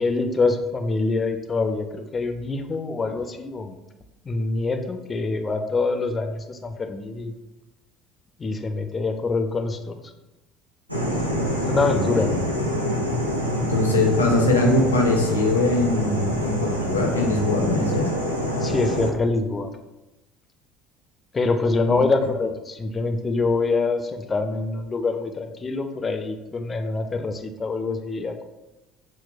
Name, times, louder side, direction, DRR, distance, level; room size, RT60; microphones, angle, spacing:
voice 1, 0.0-3.8 4.2-7.3 8.4-10.1 11.7-12.4 18.6-19.7 21.3-28.4, left 3 dB, 25° left, 7 dB, 0.4 m, -25 dB
sound 1, 10.9-19.1, equal, 90° right, 0.4 m, -26 dB
voice 2, 13.7-18.1 21.9-22.0, left 2 dB, 80° left, 1 dB, 0.5 m, -22 dB
5.8 x 2.1 x 2.4 m, 1.0 s
figure-of-eight pair, 60°, 0 cm